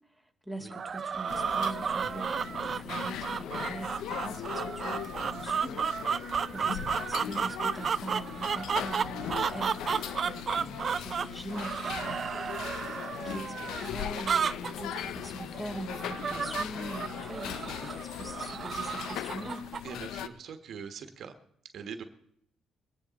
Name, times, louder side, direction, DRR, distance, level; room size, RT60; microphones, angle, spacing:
voice 1, 0.5-5.9 6.5-12.3 13.2-19.7, right 1 dB, 10° left, 5 dB, 1.9 m, -42 dB
sound 1, 0.7-19.9, right 6 dB, 45° right, 0.4 m, -33 dB
sound 2, 1.3-20.3, left 10 dB, 85° left, 0.6 m, -39 dB
voice 2, 19.8-21.3 21.7-22.0, right 6 dB, 65° right, 8 dB, 1.3 m, -42 dB
22.5 x 10.0 x 4.1 m, 0.71 s
cardioid pair, 90°, 0 cm